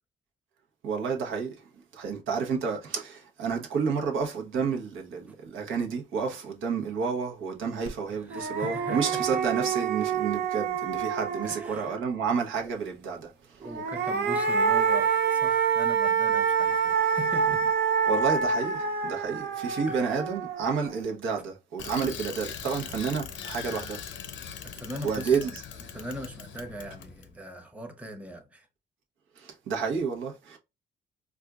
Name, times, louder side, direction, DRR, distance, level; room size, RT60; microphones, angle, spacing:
voice 1, 0.8-1.6 1.9-13.6 18.1-24.0 25.0-25.5 29.4-30.6, right 5 dB, 80° right, 1.0 m, -30 dB
sound 1, 7.9-8.0 8.3-12.0 13.6-20.9, right 6 dB, 55° right, 0.7 m, -27 dB
voice 2, 8.1-9.4 11.4-12.0 12.6-12.7 13.6-17.6 19.9-20.0 24.6-25.5 25.9-28.7, equal, 5° right, 0.9 m, -40 dB
Bicycle, 21.8-27.3, left 8 dB, 70° left, 0.6 m, -40 dB
4.3 x 2.4 x 2.4 m
cardioid pair, 90°, 20 cm